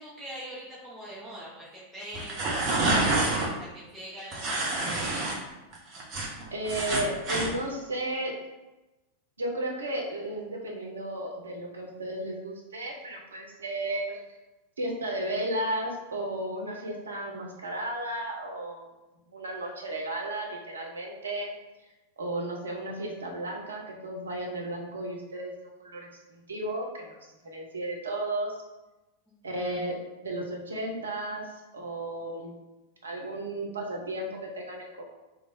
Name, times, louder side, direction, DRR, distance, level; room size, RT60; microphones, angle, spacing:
voice 1, 0.0-2.4 2.8-3.2 3.6-5.3 29.5-29.8, equal, ahead, -10 dB, 1.0 m, -43 dB
sound 1, 2.1-3.5 4.3-5.4 5.7-7.5, right 2 dB, 35° right, 0.9 m, -27 dB
voice 2, 6.5-8.3 9.4-14.2 14.8-18.8 19.3-21.5 22.2-27.2 27.4-28.6 29.4-32.5 33.0-35.0, right 1 dB, 70° right, 0 dB, 0.7 m, -34 dB
3.1 x 2.3 x 4.3 m, 1.0 s
figure-of-eight pair, 90°, 0 cm